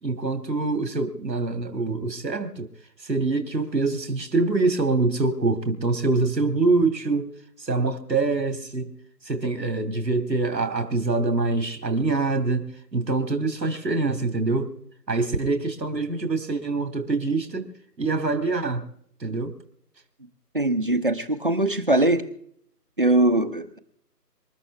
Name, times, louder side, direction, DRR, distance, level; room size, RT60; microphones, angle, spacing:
voice 1, 0.0-2.7 3.0-7.3 7.6-8.9 9.2-14.7 15.1-17.7 18.0-18.9 19.2-19.5, right 3 dB, 80° right, 8 dB, 2.6 m, -25 dB
voice 2, 20.5-22.2 23.0-23.8, right 2 dB, 30° right, 11 dB, 1.0 m, -21 dB
26.5 x 12.5 x 3.4 m, 0.66 s
figure-of-eight pair, 170°, 50 cm